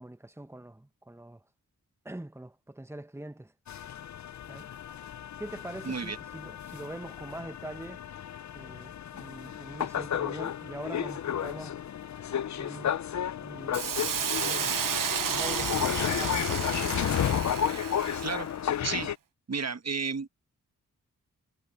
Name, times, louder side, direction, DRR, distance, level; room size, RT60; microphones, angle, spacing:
voice 1, 0.0-1.4 2.0-3.5 4.5-4.7 5.4-8.0 8.5-11.8 12.5-12.9 13.4-13.9 14.4-14.8 15.3-16.8, right 1 dB, 10° right, 1.4 m, -43 dB
sound 1, 3.7-19.1, left 9 dB, 55° left, 0.6 m, -33 dB
voice 2, 5.8-6.2 18.2-18.5 18.8-19.1 19.5-20.3, right 5 dB, 50° right, 1.4 m, -32 dB
Hiss, 13.7-18.5, right 8 dB, 70° right, 1.0 m, -32 dB
cardioid pair, 45°, 34 cm